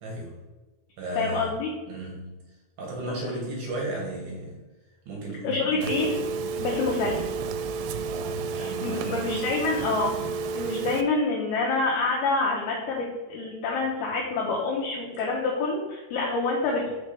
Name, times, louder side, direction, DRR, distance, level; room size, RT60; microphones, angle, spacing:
voice 1, 0.0-0.4 1.0-1.5 1.9-2.4 2.8-4.6 5.1-5.9 6.9-7.0 8.0-9.4, right 2 dB, 70° right, -2 dB, 2.3 m, -35 dB
voice 2, 1.2-1.7 3.2-3.3 5.4-6.1 6.6-7.3 8.5-10.2 10.5-16.9, left 3 dB, 75° left, -4 dB, 2.4 m, -27 dB
Telephone, 5.8-11.0, right 4 dB, 85° right, 2.9 m, -31 dB
6.1 x 5.8 x 3.3 m, 1.2 s
omnidirectional pair, 5.4 m